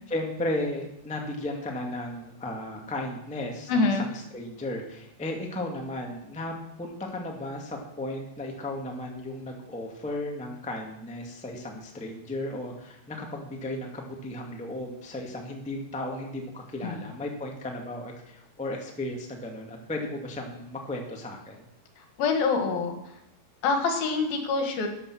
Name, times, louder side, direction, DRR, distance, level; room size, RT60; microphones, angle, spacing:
voice 1, 0.1-21.7, left 1 dB, 5° left, 1 dB, 1.1 m, -35 dB
voice 2, 3.7-4.1 16.8-16.9 22.0-23.0 23.6-24.9, left 4 dB, 75° left, 5 dB, 3.4 m, -25 dB
13.5 x 9.7 x 6.4 m, 0.81 s
omnidirectional pair, 4.4 m